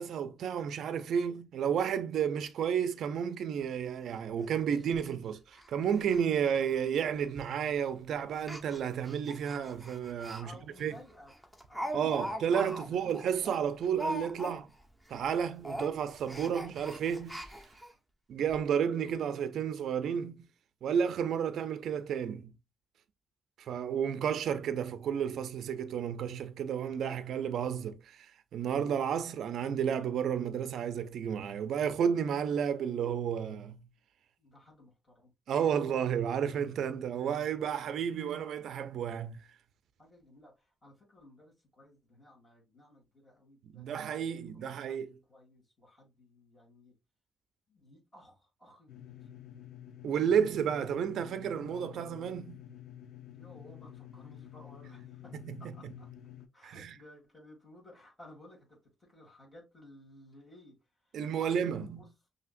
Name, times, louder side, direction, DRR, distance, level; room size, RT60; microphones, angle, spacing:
voice 1, 0.0-10.5 10.8-10.9 11.9-14.7 15.1-17.5 18.3-20.5 20.8-22.5 23.6-33.8 35.5-39.4 43.7-45.1 50.0-52.6 55.5-55.7 56.6-56.9 61.1-62.0, right 8 dB, 70° right, 0.4 m, -32 dB
Speech, 3.6-3.7 4.0-4.1 4.5-4.6 4.9-5.1 5.5-5.7 5.9-6.2 6.5-6.6 7.4-7.6 8.3-10.4 10.8-10.9 11.3-14.8 15.1-15.3 15.6-17.9 18.5-18.6 18.9-19.0, equal, ahead, 0.9 m, -41 dB
voice 2, 10.4-13.0 17.9-18.0 34.4-35.3 40.0-47.0 47.7-49.3 53.3-56.1 56.5-60.8 61.0-62.1, left 1 dB, 20° left, 2.1 m, -56 dB
sound 1, 48.9-56.5, left 11 dB, 80° left, 0.7 m, -50 dB
5.6 x 2.7 x 2.5 m
cardioid pair, 105°, 0 cm